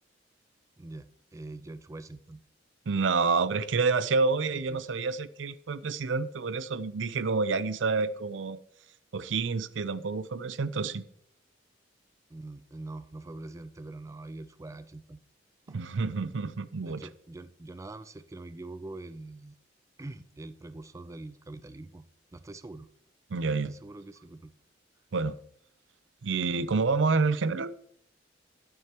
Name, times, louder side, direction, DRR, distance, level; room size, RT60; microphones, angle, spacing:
voice 1, 0.8-2.4 4.5-4.8 12.3-15.2 15.7-15.8 16.8-19.6 20.0-22.0 22.3-22.9 23.5-24.5, right 2 dB, 15° right, 0.3 m, -44 dB
voice 2, 2.9-8.6 9.1-11.0 15.7-17.1 23.3-23.7 25.1-25.4 26.2-27.7, right 4 dB, 80° right, 0.5 m, -28 dB
12.5 x 9.1 x 2.9 m
head